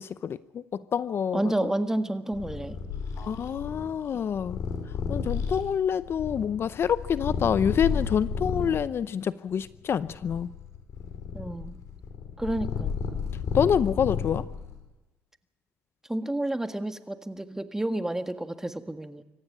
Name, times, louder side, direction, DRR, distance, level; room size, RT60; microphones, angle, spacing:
voice 1, 0.0-1.5 3.2-4.6 5.1-10.5 13.5-14.4, left 8 dB, 50° left, 16 dB, 0.7 m, -27 dB
voice 2, 1.3-2.8 11.3-11.8 12.4-13.0 16.1-19.2, right 1 dB, 10° right, 9 dB, 1.7 m, -30 dB
Purr, 2.3-8.9 9.5-14.8, left 6 dB, 70° left, 4.5 m, -33 dB
26.0 x 15.0 x 8.6 m, 1.1 s
cardioid pair, 95°, 5 cm